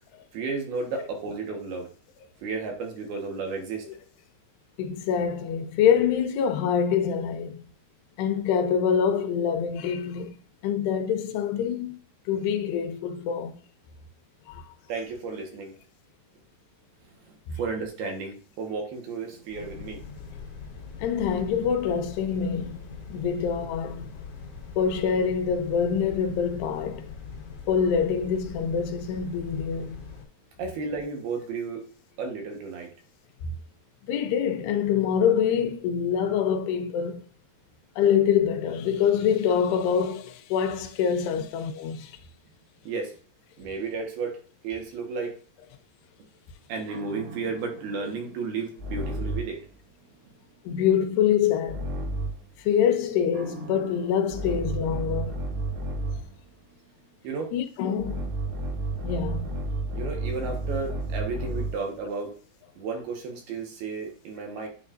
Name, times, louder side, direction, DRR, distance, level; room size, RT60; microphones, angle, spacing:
voice 1, 0.3-1.9 2.4-3.8 14.9-15.7 17.2-20.0 30.6-31.8 32.2-32.9 41.3-41.4 42.8-43.1 43.6-44.4 44.6-45.4 46.7-49.6 57.2-57.5 59.9-62.3 62.8-64.7, right 4 dB, 70° right, 3.2 m, -33 dB
voice 2, 4.8-7.6 8.2-10.3 10.6-12.0 12.3-13.6 14.5-14.6 17.5-17.6 21.0-24.1 24.8-27.1 27.7-30.0 34.1-37.2 38.0-42.2 50.7-51.9 52.6-55.5 57.5-58.3 59.0-59.5, left 7 dB, 85° left, 2.9 m, -25 dB
sound 1, 19.5-30.2, left 5 dB, 55° left, 1.8 m, -41 dB
sound 2, 46.9-49.6 51.7-52.5 53.3-56.3 58.0-61.9, right 2 dB, 85° right, 3.7 m, -32 dB
9.4 x 4.8 x 2.6 m
omnidirectional pair, 4.7 m